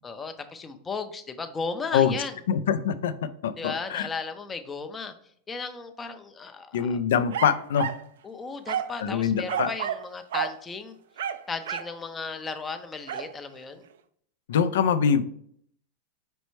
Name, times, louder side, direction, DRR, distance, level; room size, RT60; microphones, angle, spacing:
voice 1, 0.0-2.4 3.6-5.1 5.5-7.0 8.2-11.0 11.5-13.8, left 4 dB, 15° left, 7 dB, 0.4 m, -35 dB
voice 2, 2.5-3.1 3.4-4.1 6.7-7.9 9.0-9.7 14.5-15.2, left 7 dB, 85° left, 11 dB, 0.4 m, -24 dB
sound 1, 7.3-8.1 8.7-9.0 9.5-10.1 10.3-10.6 11.2-12.0 13.1-13.3, right 9 dB, 85° right, 0.4 m, -31 dB
5.2 x 3.2 x 3.1 m, 0.64 s
supercardioid pair, 145°, 0 cm